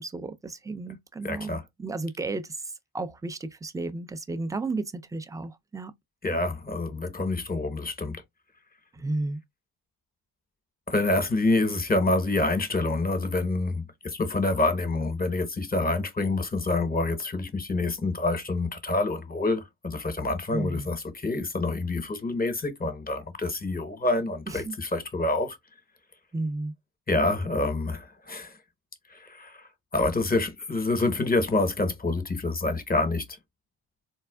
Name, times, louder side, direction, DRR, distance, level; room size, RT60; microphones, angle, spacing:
voice 1, 0.0-2.6 2.9-5.9 8.9-9.4 20.5-20.9 24.5-24.7 26.3-26.7, right 2 dB, 5° right, 0.4 m, -33 dB
voice 2, 1.2-1.6 6.2-8.2 10.9-25.6 27.1-28.5 29.1-29.6 29.9-33.2, left 2 dB, 20° left, 1.0 m, -27 dB
4.3 x 2.3 x 2.3 m
cardioid pair, 65°, 50 cm